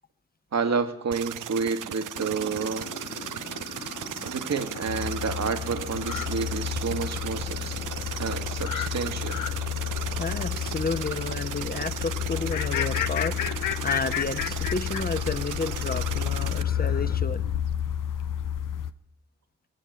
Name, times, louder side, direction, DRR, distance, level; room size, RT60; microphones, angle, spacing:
voice 1, 0.5-2.9 4.2-7.8 8.2-9.4, right 5 dB, 55° right, 8 dB, 2.0 m, -30 dB
sound 1, 1.1-16.6, right 12 dB, 70° right, 0.7 m, -37 dB
Fire, 2.2-17.2, left 4 dB, 55° left, 2.6 m, -42 dB
sound 2, 4.9-18.9, left 9 dB, 75° left, 0.8 m, -30 dB
voice 2, 10.2-17.5, left 4 dB, 30° left, 12 dB, 1.3 m, -31 dB
20.0 x 7.3 x 8.4 m, 0.73 s
supercardioid pair, 40°, 32 cm